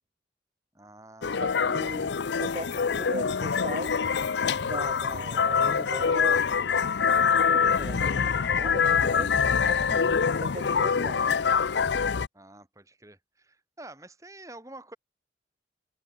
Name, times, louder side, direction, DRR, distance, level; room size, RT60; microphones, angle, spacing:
voice 1, 0.7-1.5 1.9-2.1 9.6-9.9 12.3-15.0, right 2 dB, 15° right, 4.2 m, -48 dB
sound 1, 1.2-12.3, left 6 dB, 80° left, 0.6 m, -25 dB
voice 2, 1.3-4.0 4.6-6.5 7.5-9.3 9.6-11.3, right 1 dB, 35° right, 1.2 m, -38 dB
head